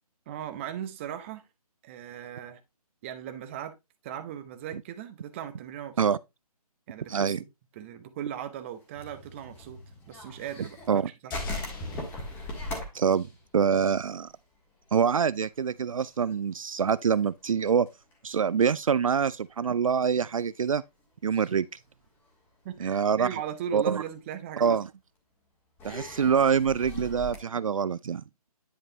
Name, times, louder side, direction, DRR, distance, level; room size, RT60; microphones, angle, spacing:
voice 1, 0.3-1.5 1.8-2.6 3.0-3.8 4.0-6.2 6.9-7.3 7.7-9.8 10.1-10.8 11.2-11.3 22.6-24.8, right 9 dB, 20° right, 0.8 m, -38 dB
voice 2, 7.1-7.4 10.9-11.1 12.9-13.3 13.5-14.3 14.9-17.9 18.2-20.8 21.2-21.7 22.8-23.3 23.7-24.0 24.6-24.9 25.8-28.2, right 7 dB, 60° right, 0.4 m, -25 dB
sound 1, 8.8-11.0 11.3-14.6 14.8-14.9 15.3-15.7 16.0-19.4 20.2-20.3 21.3-21.5 22.1-22.7 23.3-23.4 24.7-24.8 25.8-27.4, left 2 dB, 10° left, 1.6 m, -40 dB
sound 2, 11.3-13.7 14.0-14.1, left 4 dB, 35° left, 1.6 m, -49 dB
10.0 x 5.1 x 2.8 m
figure-of-eight pair, 150°, 20 cm